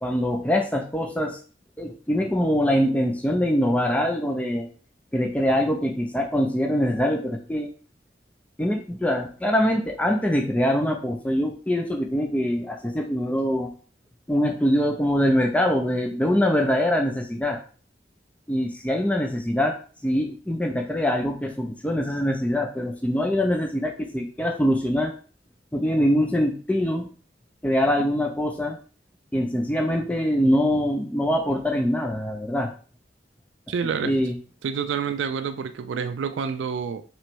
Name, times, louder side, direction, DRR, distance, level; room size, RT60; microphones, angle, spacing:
voice 1, 0.0-1.4 1.8-4.7 5.1-7.7 8.6-13.7 14.3-17.6 18.5-19.7 20.0-25.1 25.7-27.1 27.6-28.8 29.3-32.7 34.0-34.4, equal, 10° left, 2 dB, 0.4 m, -23 dB
voice 2, 33.7-34.2 34.6-37.0, right 6 dB, 90° right, 9 dB, 0.3 m, -28 dB
3.1 x 3.0 x 4.5 m, 0.39 s
head